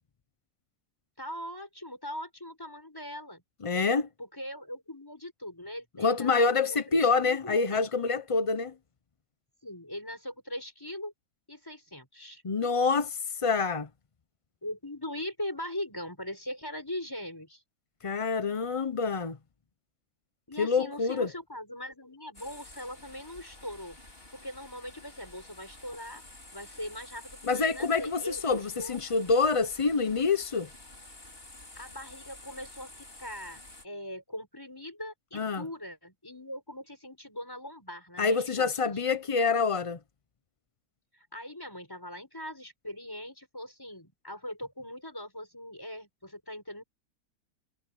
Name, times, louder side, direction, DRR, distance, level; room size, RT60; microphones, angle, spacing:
voice 1, 1.2-3.4 4.2-7.9 9.6-11.1 11.5-12.4 14.6-17.6 20.5-24.0 24.3-26.2 26.5-29.0 31.7-39.0 41.1-46.8, left 1 dB, 10° left, 5.6 m, -41 dB
voice 2, 3.6-4.1 6.0-8.7 12.4-13.9 18.0-19.4 20.6-21.3 27.4-30.7 35.3-35.6 38.2-40.0, left 4 dB, 50° left, 0.3 m, -27 dB
forest river grills waldviertel austria, 22.3-33.8, left 2 dB, 35° left, 5.0 m, -50 dB
omnidirectional pair, 1.8 m